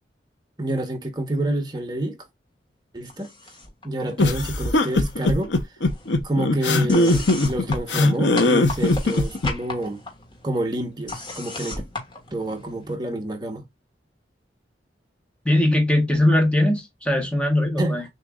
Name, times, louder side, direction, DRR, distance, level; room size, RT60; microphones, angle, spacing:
voice 1, 0.6-2.2 2.9-3.3 3.8-5.5 6.2-10.0 10.4-11.8 12.3-13.6 17.8-18.0, right 1 dB, 25° right, 1.2 m, -28 dB
sound 1, 3.0-3.8 4.1-5.1 5.4-12.9, left 2 dB, 25° left, 1.6 m, -36 dB
sound 2, 4.2-9.5, left 2 dB, 85° left, 0.9 m, -20 dB
voice 2, 15.4-18.0, left 1 dB, 5° left, 1.4 m, -20 dB
6.6 x 3.0 x 2.4 m
head